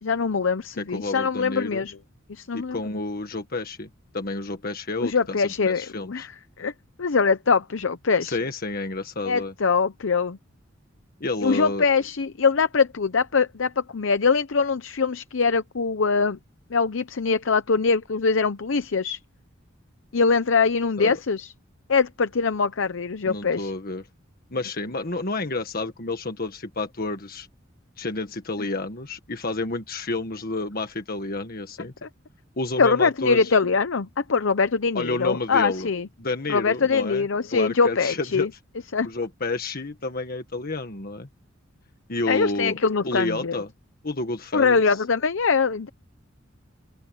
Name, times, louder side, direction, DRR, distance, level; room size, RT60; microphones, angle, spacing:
voice 1, 0.0-2.0 2.3-2.8 5.0-6.3 6.6-6.7 7.0-8.4 9.3-10.4 11.4-16.4 16.7-19.2 20.1-21.5 21.9-23.7 32.0-32.1 32.8-36.1 36.5-38.5 38.9-39.1 42.3-43.6 44.5-45.9, left 5 dB, 70° left, 0.7 m, -23 dB
voice 2, 0.8-1.8 2.5-3.9 4.1-6.3 8.2-9.5 11.2-11.8 21.0-21.2 23.3-24.0 24.5-27.5 28.0-31.9 32.6-33.5 34.9-35.9 36.2-37.2 37.5-38.5 39.0-41.3 42.1-42.8 43.0-43.7 44.0-44.8, left 2 dB, 50° left, 1.6 m, -30 dB
open air
head